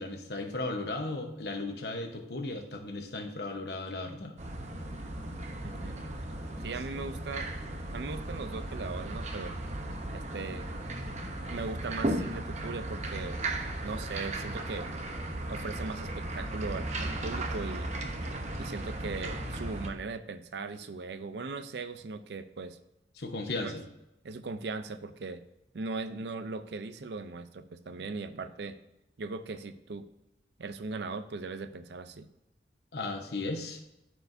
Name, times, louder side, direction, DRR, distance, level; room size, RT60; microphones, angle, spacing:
voice 1, 0.0-4.3 23.2-23.8 32.9-33.8, left 2 dB, 65° left, 5 dB, 1.0 m, -36 dB
sound 1, 4.4-19.9, right 1 dB, 40° right, 0.8 m, -36 dB
voice 2, 5.6-6.0 6.6-7.5 7.9-9.5 10.1-10.7 11.5-13.4 13.8-14.9 15.5-17.9 18.6-22.8 23.6-23.7 24.2-25.4 25.7-28.8 29.2-30.0 30.6-32.3, right 3 dB, 70° right, 10 dB, 0.5 m, -39 dB
13.5 x 4.6 x 2.6 m, 0.91 s
head